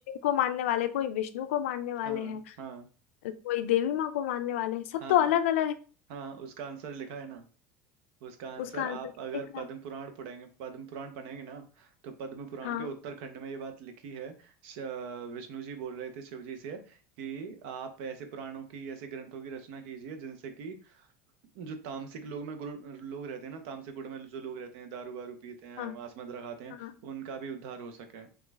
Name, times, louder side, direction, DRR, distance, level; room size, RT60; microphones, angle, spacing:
voice 1, 0.1-2.4 3.2-5.7 8.6-9.1 9.5-9.7 12.6-12.9 25.8-25.9 26.8-26.9, left 11 dB, 85° left, 10 dB, 0.4 m, -29 dB
voice 2, 2.0-2.9 5.0-5.3 6.1-7.4 8.2-21.1 21.5-28.3, right 6 dB, 75° right, 7 dB, 0.7 m, -41 dB
3.0 x 2.4 x 3.3 m, 0.37 s
supercardioid pair, 100°, 7 cm